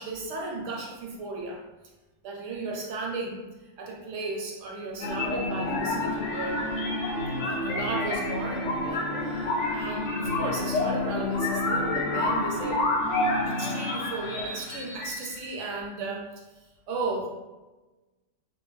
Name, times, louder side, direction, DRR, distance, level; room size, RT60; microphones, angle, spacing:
voice 1, 0.0-1.6 2.2-3.4 3.8-6.7 7.4-12.9 13.5-16.2 16.9-17.3, right 3 dB, 70° right, -1 dB, 0.9 m, -35 dB
sound 1, 5.0-15.6, left 2 dB, 70° left, 0.8 m, -29 dB
2.3 x 2.2 x 3.1 m, 1.1 s
omnidirectional pair, 1.4 m